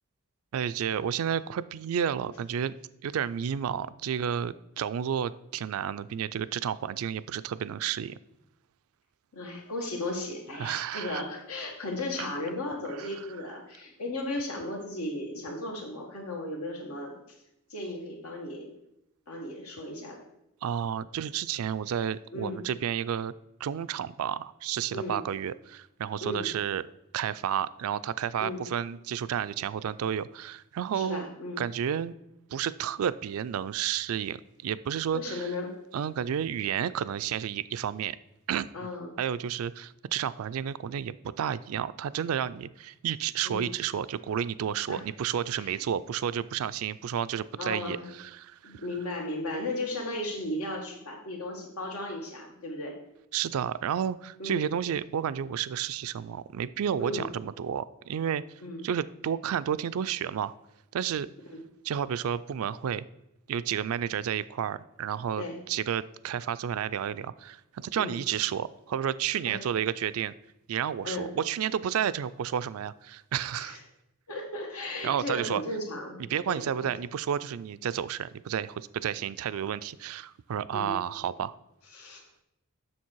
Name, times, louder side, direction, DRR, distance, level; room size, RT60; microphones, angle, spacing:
voice 1, 0.5-2.7 3.0-8.2 10.6-11.2 13.0-13.1 20.6-23.3 23.6-26.8 27.1-31.3 31.6-32.1 32.5-35.4 35.9-38.2 38.5-38.7 39.2-48.8 53.3-58.4 58.8-60.5 60.9-61.3 61.8-63.1 63.5-70.3 70.7-73.8 75.0-75.6 76.3-81.5, right 8 dB, 70° right, 15 dB, 0.3 m, -31 dB
voice 2, 9.3-17.1 17.7-18.6 19.3-20.2 22.3-22.6 24.9-25.2 26.2-26.5 28.4-28.6 30.9-31.6 35.1-35.7 38.7-39.2 43.4-43.7 44.9-45.0 45.6-45.8 47.6-48.1 48.6-53.0 54.4-54.7 57.0-57.3 58.6-58.8 61.5-61.6 65.4-65.6 68.0-68.2 69.5-69.6 71.0-71.3 73.5-73.8 74.3-76.9 80.7-81.0 81.9-82.4, left 1 dB, 85° left, 1 dB, 1.7 m, -35 dB
7.2 x 6.2 x 4.5 m, 0.84 s
head